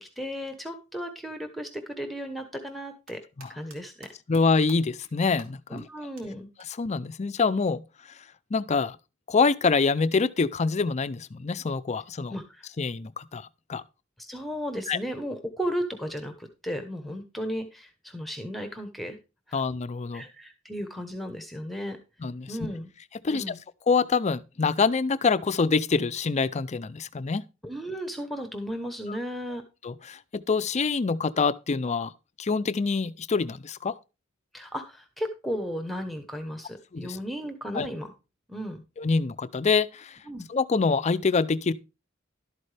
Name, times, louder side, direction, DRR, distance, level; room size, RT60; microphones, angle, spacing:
voice 1, 0.0-3.2 3.5-4.1 5.7-6.5 12.3-12.7 14.2-19.2 19.5-19.6 20.1-22.0 22.5-22.9 23.3-23.6 27.6-29.6 34.5-38.1 38.5-38.8 40.3-40.5, equal, ahead, 1.0 m, -35 dB
sound 1, 2.8-4.4 4.7-5.1 5.4-5.5 5.8-5.9 6.2-6.3 6.6-6.7 8.2-8.3, right 3 dB, 70° right, 2.9 m, -49 dB
voice 2, 4.3-5.8 6.8-7.8 8.5-9.0 9.3-12.3 12.8-13.8 14.9-15.0 19.5-20.2 22.2-22.5 23.2-23.5 23.9-27.4 29.1-29.2 29.8-32.1 32.4-33.9 36.9-37.2 37.7-37.9 39.0-40.2 40.5-41.7, left 4 dB, 35° left, 0.5 m, -25 dB
11.5 x 8.6 x 3.3 m
head